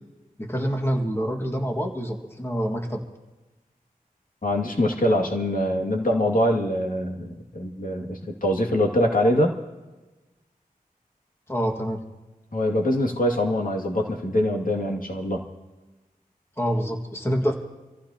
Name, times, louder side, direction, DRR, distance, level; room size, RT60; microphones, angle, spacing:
voice 1, 0.4-3.0 11.5-12.0 16.6-17.5, equal, 15° left, 2 dB, 1.9 m, -26 dB
voice 2, 4.4-9.5 12.5-15.4, left 1 dB, 65° left, 0 dB, 2.3 m, -23 dB
26.5 x 15.5 x 2.9 m, 1.1 s
wide cardioid pair, 60°, 15 cm